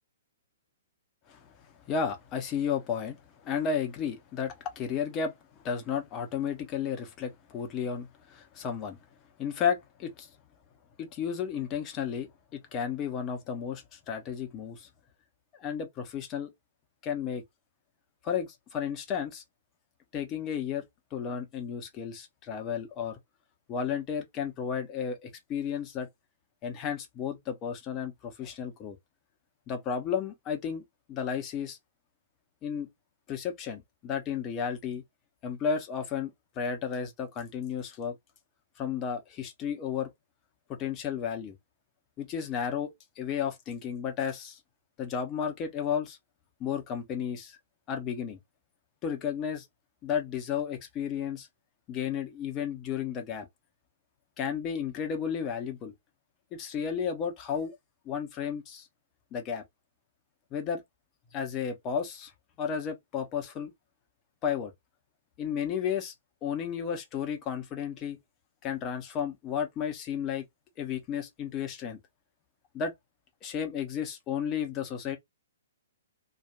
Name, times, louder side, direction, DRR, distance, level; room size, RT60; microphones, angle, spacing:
voice 1, 1.9-3.2 3.4-5.3 5.6-9.0 9.4-10.3 11.0-14.9 15.6-16.5 17.0-17.4 18.2-19.4 20.1-20.8 21.1-23.2 23.7-26.1 26.6-29.0 29.7-30.8 31.1-31.8 32.6-32.9 33.3-35.0 35.4-38.1 38.8-40.1 40.7-41.6 42.2-44.6 45.0-46.2 46.6-47.6 47.9-48.4 49.0-49.6 50.0-51.5 51.9-53.5 54.4-55.9 56.5-57.7 58.1-58.9 59.3-59.6 60.5-60.8 61.3-62.3 62.6-63.7 64.4-64.7 65.4-66.1 66.4-68.2 68.6-70.4 70.8-72.0 72.7-72.9 73.4-75.2, left 7 dB, 25° left, 0.8 m, -33 dB
2.8 x 2.4 x 2.3 m
figure-of-eight pair, 120°, 0 cm